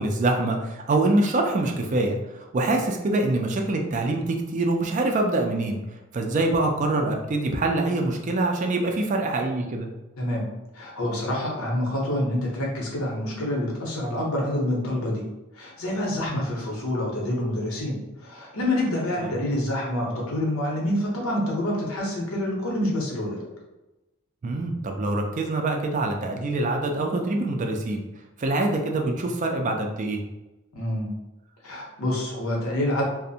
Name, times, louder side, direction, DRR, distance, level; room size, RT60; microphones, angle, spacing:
voice 1, 0.0-5.8 6.1-9.9 16.3-16.4 19.2-19.4 24.4-28.0 28.4-30.2, right 2 dB, 35° right, 3 dB, 0.3 m, -25 dB
voice 2, 10.2-10.5 10.7-15.2 15.5-23.5 30.7-31.1 31.6-33.0, left 1 dB, 85° left, -2 dB, 0.8 m, -27 dB
2.5 x 2.0 x 2.7 m, 1.0 s
head